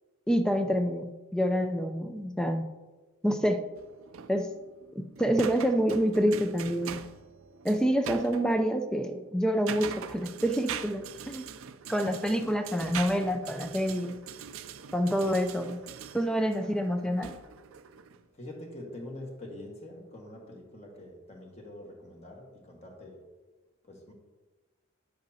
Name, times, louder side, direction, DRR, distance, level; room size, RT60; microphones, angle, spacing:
voice 1, 0.3-2.6 3.2-3.7 4.3-4.5 4.9-7.0 7.6-11.4 11.9-14.2 14.9-15.8 16.1-17.3, equal, 5° left, 7 dB, 0.4 m, -27 dB
sound 1, 3.8-8.5 9.3-18.2, right 8 dB, 85° right, 0.5 m, -43 dB
voice 2, 18.3-23.3 23.8-24.1, left 1 dB, 30° left, 0 dB, 1.5 m, -45 dB
9.3 x 7.9 x 2.8 m, 1.2 s
head